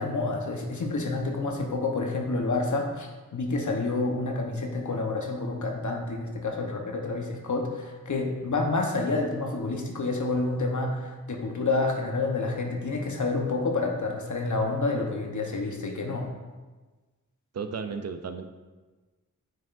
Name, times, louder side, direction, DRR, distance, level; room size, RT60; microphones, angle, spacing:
voice 1, 0.0-16.3, left 3 dB, 60° left, 1 dB, 1.1 m, -29 dB
voice 2, 17.5-18.5, right 5 dB, 50° right, 8 dB, 0.5 m, -34 dB
9.1 x 4.9 x 2.6 m, 1.3 s
wide cardioid pair, 90°, 33 cm